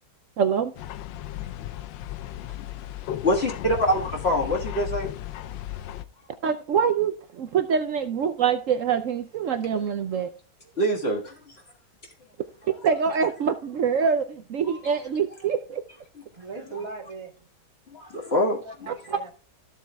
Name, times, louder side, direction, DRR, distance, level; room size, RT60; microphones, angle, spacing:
voice 1, 0.4-0.7 6.4-10.3 12.7-15.8 18.9-19.2, right 7 dB, 70° right, 0.7 m, -25 dB
sound 1, 0.8-6.1, left 12 dB, 85° left, 1.3 m, -35 dB
voice 2, 1.4-2.5 16.3-17.5 18.5-19.3, right 4 dB, 15° right, 1.7 m, -41 dB
voice 3, 3.2-5.1 10.8-11.3 17.9-18.6, equal, 35° left, 1.8 m, -24 dB
14.5 x 7.3 x 2.3 m
omnidirectional pair, 2.0 m